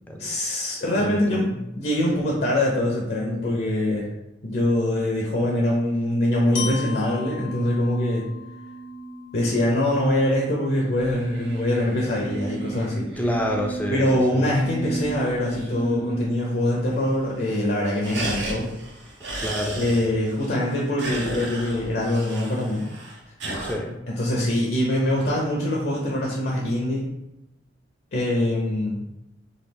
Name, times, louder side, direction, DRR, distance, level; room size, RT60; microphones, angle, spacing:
voice 1, 0.2-1.5 1.8-4.1 4.4-8.3 9.3-13.1 13.9-18.6 19.7-22.9 24.1-27.0 28.1-29.0, left 1 dB, 60° left, -2 dB, 0.5 m, -23 dB
voice 2, 0.9-1.6 13.2-14.1 14.3-14.5 19.4-20.0 23.6-24.0, left 1 dB, 10° left, 1 dB, 0.3 m, -28 dB
Glockenspiel, 6.5-10.5, left 6 dB, 90° left, 0.8 m, -38 dB
sound 1, 8.2-16.2, right 2 dB, 40° right, 0.9 m, -36 dB
sound 2, 10.8-16.1 16.4-16.5 16.8-17.3 17.6-23.7, right 2 dB, 75° right, 0.7 m, -36 dB
3.1 x 2.3 x 3.3 m, 0.88 s
head